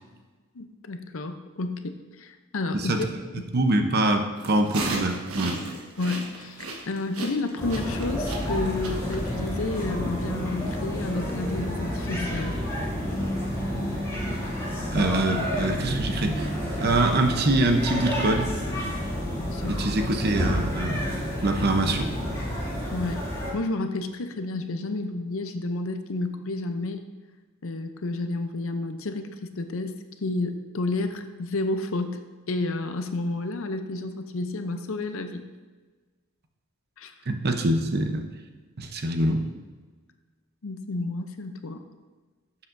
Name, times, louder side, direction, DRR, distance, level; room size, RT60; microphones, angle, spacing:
voice 1, 0.5-3.1 3.4-3.5 6.0-12.6 19.5-19.8 22.9-23.2 23.5-27.0 27.6-29.9 30.2-32.2 32.5-35.5 37.0-37.1 40.6-41.8, left 2 dB, 65° left, 8 dB, 0.6 m, -31 dB
voice 2, 2.7-3.1 3.5-5.6 14.9-16.5 16.8-18.5 19.7-21.2 21.4-22.1 37.3-38.2 38.8-39.4, right 2 dB, 50° right, 5 dB, 0.8 m, -24 dB
sound 1, 4.4-9.5, right 2 dB, 80° right, 1.3 m, -34 dB
sound 2, 7.6-23.5, equal, 15° left, 2.5 m, -30 dB
11.5 x 7.3 x 2.6 m, 1.4 s
head